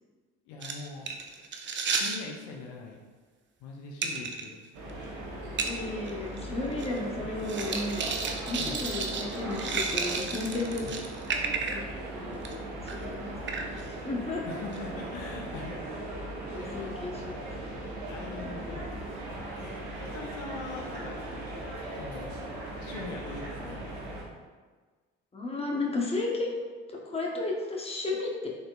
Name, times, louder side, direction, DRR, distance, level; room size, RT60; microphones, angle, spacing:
voice 1, 0.5-1.1 1.9-3.0 3.6-4.6 8.6-8.9 10.8-11.0 14.4-16.1 16.5-17.3 18.0-18.9 19.6-21.2 21.9-22.3 22.8-24.2, left 4 dB, 70° left, 0 dB, 0.6 m, -42 dB
sound 1, 0.6-2.2 4.0-4.4 4.9-5.0 5.6-5.7 6.1-6.2 6.4-7.0 7.4-11.9 12.3-12.5 12.9-13.1 13.5-13.8 14.7-14.8, right 5 dB, 35° right, 0.5 m, -32 dB
sound 2, 4.7-24.2, right 1 dB, 70° right, 1.0 m, -38 dB
voice 2, 5.6-8.1 8.5-10.9 11.7-11.8 12.1-13.4 13.9-14.4 16.5-17.5 18.4-18.7 25.3-26.6 27.0-28.5, left 2 dB, 20° left, -2 dB, 1.0 m, -34 dB
4.0 x 3.7 x 2.4 m, 1.4 s
hypercardioid pair, 55°, 31 cm